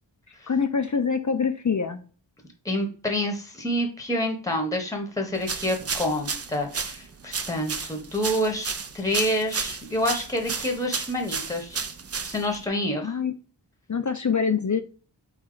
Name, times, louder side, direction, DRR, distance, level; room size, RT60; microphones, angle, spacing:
voice 1, 0.3-2.0 13.0-13.3 13.9-14.8, left 6 dB, 40° left, 8 dB, 0.4 m, -25 dB
voice 2, 2.6-11.9 12.2-13.1, left 1 dB, 5° left, 4 dB, 0.9 m, -28 dB
sound 1, 5.4-12.7, right 5 dB, 35° right, 0.4 m, -33 dB
4.1 x 3.2 x 3.8 m, 0.38 s
wide cardioid pair, 45°, 45 cm